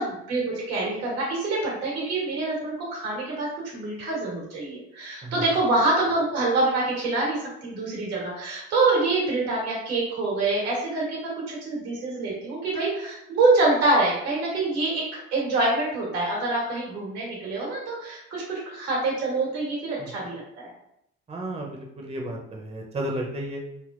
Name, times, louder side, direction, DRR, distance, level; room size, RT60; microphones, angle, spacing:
voice 1, 0.0-20.7, right 2 dB, 90° right, -5 dB, 1.4 m, -26 dB
voice 2, 5.2-5.6 20.0-20.3 21.3-23.6, right 1 dB, 20° right, 0 dB, 0.7 m, -33 dB
3.5 x 2.2 x 2.4 m, 0.77 s
hypercardioid pair, 65°, 31 cm